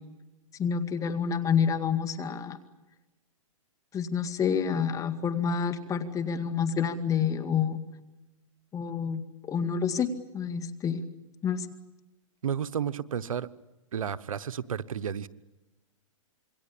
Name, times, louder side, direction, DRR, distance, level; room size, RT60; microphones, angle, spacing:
voice 1, 0.6-2.6 3.9-7.8 8.7-10.1 10.3-11.0 11.4-11.7, left 7 dB, 20° left, 11 dB, 2.2 m, -28 dB
voice 2, 12.4-13.5 13.9-15.3, right 8 dB, 85° right, 15 dB, 1.1 m, -32 dB
27.0 x 22.5 x 8.5 m, 1.0 s
hypercardioid pair, 135°, 17 cm